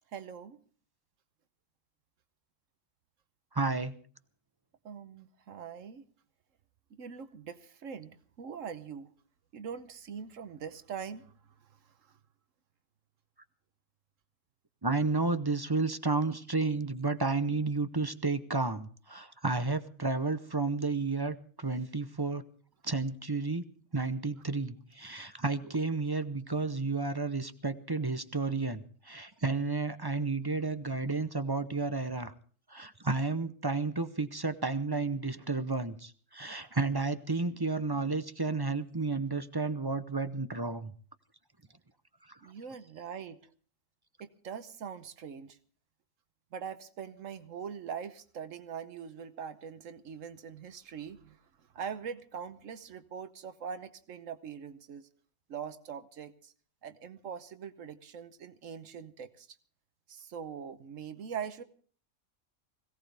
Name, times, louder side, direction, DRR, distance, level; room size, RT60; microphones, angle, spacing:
voice 1, 0.1-0.6 4.8-6.0 6.9-9.1 9.5-11.3 12.0-12.1 42.4-43.4 44.2-45.6 46.5-51.4 51.7-55.1 55.5-56.5 56.8-59.5 60.1-61.6, right 7 dB, 80° right, 11 dB, 1.3 m, -42 dB
voice 2, 3.5-3.9 14.8-22.4 22.8-23.6 23.9-32.3 32.7-40.9, right 3 dB, 25° right, 11 dB, 0.6 m, -32 dB
21.5 x 17.0 x 3.4 m, 0.43 s
omnidirectional pair, 1.3 m